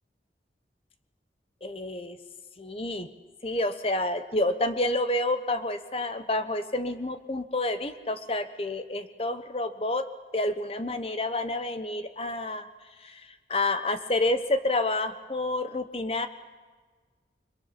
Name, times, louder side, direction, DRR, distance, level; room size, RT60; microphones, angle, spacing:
voice 1, 1.6-2.2 2.6-3.1 3.4-10.0 10.3-12.7 13.0-16.3, left 2 dB, 35° left, 10 dB, 1.1 m, -29 dB
29.5 x 22.0 x 5.9 m, 1.4 s
head